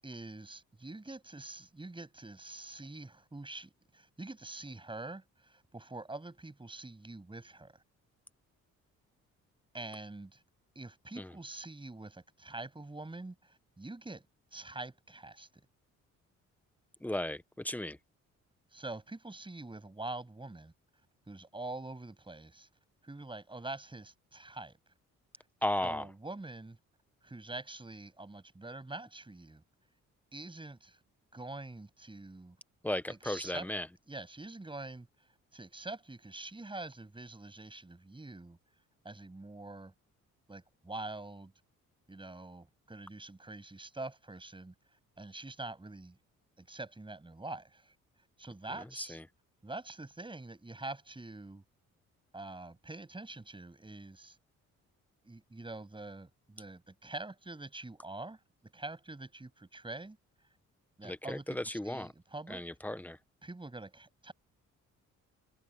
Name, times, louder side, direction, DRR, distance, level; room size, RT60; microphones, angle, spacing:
voice 1, 0.0-7.7 9.7-10.4 10.7-14.3 14.5-15.5 18.7-20.7 21.3-22.7 23.0-24.8 25.8-26.8 27.2-29.6 30.3-31.0 31.3-32.6 33.1-33.7 34.1-35.1 35.5-38.6 39.0-39.9 40.5-41.5 42.1-44.7 45.2-46.2 46.6-47.9 48.4-49.2 49.6-51.6 52.3-54.4 55.2-60.2 61.0-62.6 63.4-64.3, right 2 dB, 15° right, 7.8 m, -45 dB
voice 2, 17.0-18.0 25.6-26.0 32.8-33.9 49.0-49.2 61.0-62.1 62.5-63.2, left 1 dB, 5° left, 1.3 m, -35 dB
cardioid pair, 90°, 30 cm